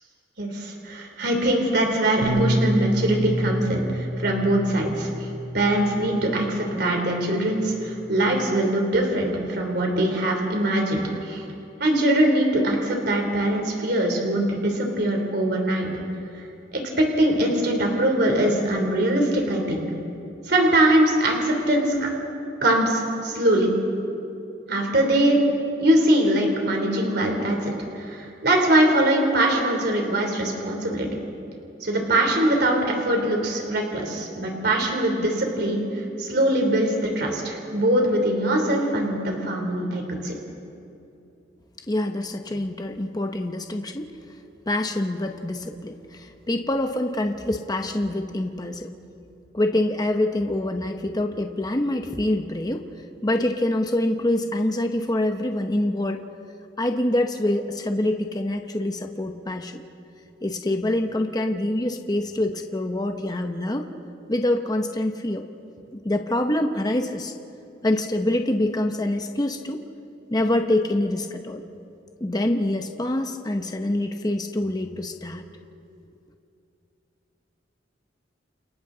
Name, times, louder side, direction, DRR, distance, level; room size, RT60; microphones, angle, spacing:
voice 1, 0.4-5.3 5.5-11.4 11.8-15.9 16.7-19.9 20.5-22.1 22.6-23.7 24.7-25.5 25.8-31.1 31.8-40.3, right 1 dB, 60° right, 2 dB, 3.5 m, -22 dB
Bass guitar, 2.2-6.7 7.5-8.5, equal, 85° right, 6.3 m, -29 dB
voice 2, 41.9-44.1 44.7-48.9 49.5-52.8 53.2-56.2 56.8-59.8 60.4-63.9 64.3-65.4 66.0-67.3 67.8-69.8 70.3-71.6 72.2-75.4, left 1 dB, 20° left, 5 dB, 0.9 m, -25 dB
29.5 x 28.5 x 4.0 m, 2.7 s
head